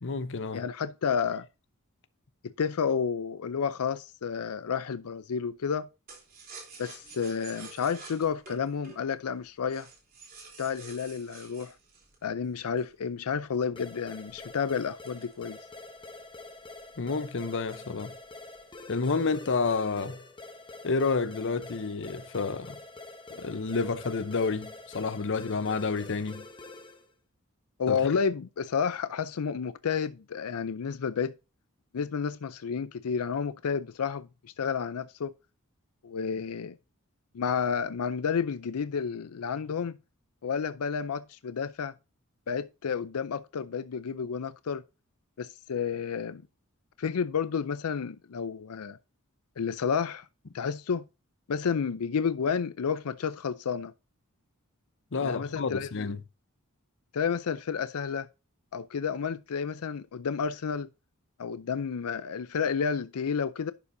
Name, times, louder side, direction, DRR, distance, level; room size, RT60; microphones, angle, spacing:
voice 1, 0.0-0.6 17.0-18.1 18.9-20.2 20.8-22.8 23.3-26.4 27.9-28.0 55.1-56.2, left 4 dB, 60° left, 0.8 m, -30 dB
voice 2, 0.5-1.5 2.4-5.9 6.8-9.9 10.6-11.8 12.2-15.6 27.8-31.3 31.9-35.3 36.0-36.8 37.3-39.9 40.4-41.9 42.5-44.8 45.4-46.4 47.0-49.0 49.6-50.3 50.5-51.1 51.5-53.9 55.2-56.1 57.1-58.3 58.7-60.9 61.4-63.7, left 6 dB, 90° left, 0.5 m, -31 dB
sound 1, 6.1-13.0 13.5-16.0 16.4-16.5 16.8-17.1 17.5-18.3 18.6-19.1, right 4 dB, 45° right, 3.4 m, -50 dB
sound 2, 13.8-27.1, left 2 dB, 20° left, 1.2 m, -46 dB
11.5 x 7.1 x 2.7 m
head